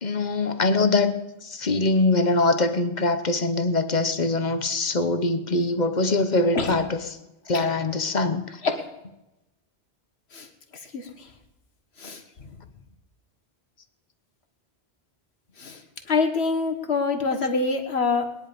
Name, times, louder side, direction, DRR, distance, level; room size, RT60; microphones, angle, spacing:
voice 1, 0.0-7.0 7.5-8.4, left 2 dB, 45° left, 10 dB, 1.0 m, -23 dB
voice 2, 16.1-18.4, left 4 dB, 75° left, 5 dB, 1.8 m, -25 dB
20.5 x 10.0 x 5.2 m, 0.95 s
omnidirectional pair, 1.1 m